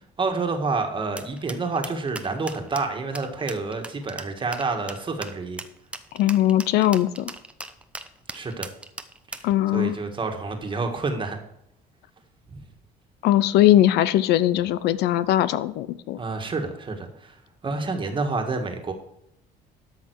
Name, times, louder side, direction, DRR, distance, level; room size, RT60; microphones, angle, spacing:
voice 1, 0.2-5.6 8.3-8.7 9.3-9.4 9.7-11.4 12.5-12.6 16.2-18.9, right 3 dB, 30° right, 4 dB, 1.6 m, -28 dB
sound 1, 1.2-9.5, right 2 dB, 5° right, 0.7 m, -38 dB
voice 2, 6.1-7.3 9.4-9.9 13.2-16.2, left 13 dB, 80° left, 16 dB, 0.6 m, -20 dB
12.5 x 5.7 x 4.7 m, 0.82 s
cardioid pair, 110°, 17 cm